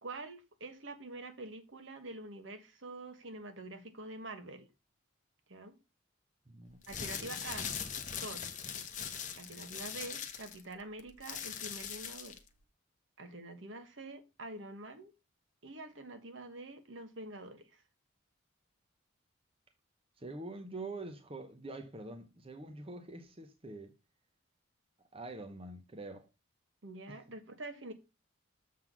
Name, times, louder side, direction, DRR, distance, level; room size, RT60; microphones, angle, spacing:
voice 1, 0.0-4.7 5.5-5.8 6.9-7.7 8.2-8.4 9.4-12.4 13.2-15.1 15.6-17.8 26.8-27.9, right 2 dB, 65° right, 1.3 m, -46 dB
voice 2, 6.5-6.8 7.2-7.4 20.2-23.9 25.1-26.3 27.1-27.2, right 2 dB, 25° right, 0.8 m, -45 dB
sound 1, 6.7-12.5, left 7 dB, 35° left, 0.9 m, -41 dB
7.4 x 3.9 x 6.0 m
head